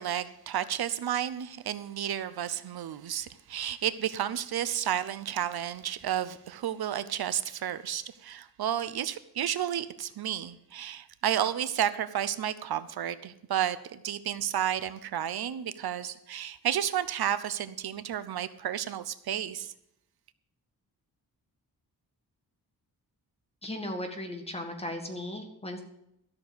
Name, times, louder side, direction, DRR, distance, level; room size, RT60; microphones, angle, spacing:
voice 1, 0.0-19.7, right 10 dB, 85° right, 13 dB, 0.8 m, -32 dB
voice 2, 23.6-25.8, left 1 dB, 15° left, 4 dB, 1.8 m, -36 dB
13.0 x 6.8 x 7.9 m, 0.80 s
wide cardioid pair, 165°, 36 cm